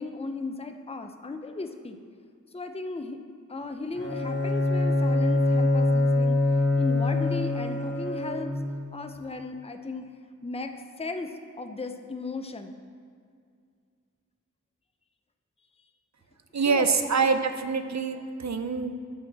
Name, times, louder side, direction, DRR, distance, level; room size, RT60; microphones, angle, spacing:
voice 1, 0.0-2.0 2.5-3.2 3.5-6.4 6.8-8.5 8.9-10.1 10.4-12.7 16.7-16.9, left 3 dB, 20° left, 6 dB, 0.6 m, -36 dB
Bowed string instrument, 3.9-8.8, left 2 dB, 35° left, 2.1 m, -24 dB
voice 2, 16.5-18.9, right 5 dB, 60° right, 8 dB, 0.7 m, -25 dB
9.3 x 4.4 x 7.4 m, 2.2 s
wide cardioid pair, 55°, 31 cm